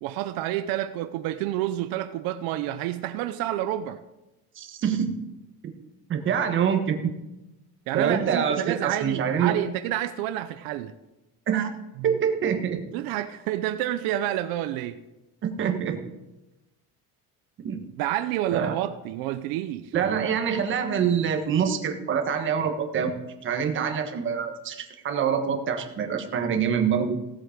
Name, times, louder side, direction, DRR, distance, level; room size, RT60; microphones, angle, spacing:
voice 1, 0.0-4.0 7.9-10.9 12.0-12.1 12.9-15.0 18.0-19.9, right 13 dB, 85° right, 0.8 m, -29 dB
voice 2, 4.6-5.2 6.1-7.0 7.9-9.6 11.5-11.7 12.0-12.8 15.4-16.0 17.6-17.8 18.5-18.7 19.9-23.1 23.4-27.2, right 7 dB, 35° right, 1.4 m, -25 dB
16.5 x 7.8 x 5.1 m
cardioid pair, 170°, 35 cm